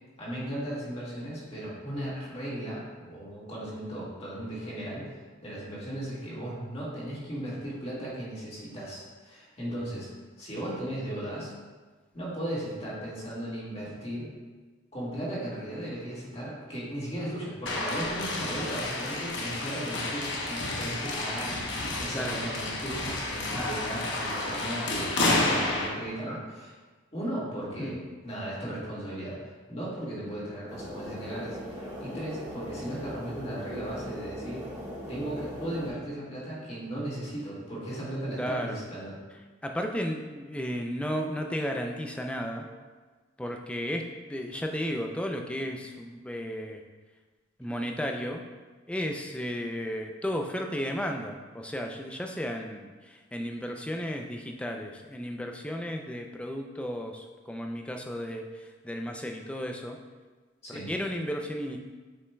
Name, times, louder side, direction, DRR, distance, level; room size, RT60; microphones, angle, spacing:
voice 1, 0.2-10.1 10.4-11.5 12.1-14.3 14.9-21.6 22.0-26.7 27.1-27.9 28.2-34.7 35.1-39.2 60.6-60.9, right 1 dB, 30° left, -7 dB, 1.8 m, -36 dB
sound 1, 17.7-25.9, left 2 dB, 65° left, 1.0 m, -30 dB
sound 2, 30.7-35.9, equal, 20° right, 1.9 m, -40 dB
voice 2, 38.4-38.8 39.6-42.7 43.4-46.8 47.6-48.4 48.9-60.0 60.7-61.8, equal, 5° left, 2 dB, 0.4 m, -34 dB
8.2 x 5.4 x 2.3 m, 1.3 s
head